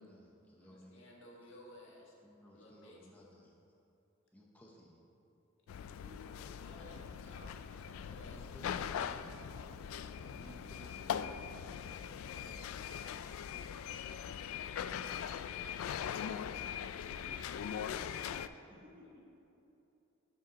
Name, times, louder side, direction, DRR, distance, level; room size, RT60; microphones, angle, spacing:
voice 1, 0.0-1.1 2.2-3.5 4.3-5.0 8.2-9.3 10.3-11.4, equal, 10° left, -3 dB, 0.8 m, -58 dB
voice 2, 0.6-2.2 2.5-3.0 5.9-8.5 9.2-10.7 12.2-13.0 19.2-19.3, left 1 dB, 65° left, -3 dB, 1.5 m, -59 dB
sound 1, 5.7-18.5, left 8 dB, 85° left, 0.3 m, -41 dB
voice 3, 5.8-7.2 17.0-17.5 17.7-19.3, left 1 dB, 25° right, -5 dB, 1.3 m, -58 dB
sound 2, 6.9-13.3, right 3 dB, 65° right, 0.4 m, -61 dB
13.0 x 5.2 x 4.0 m, 2.8 s
head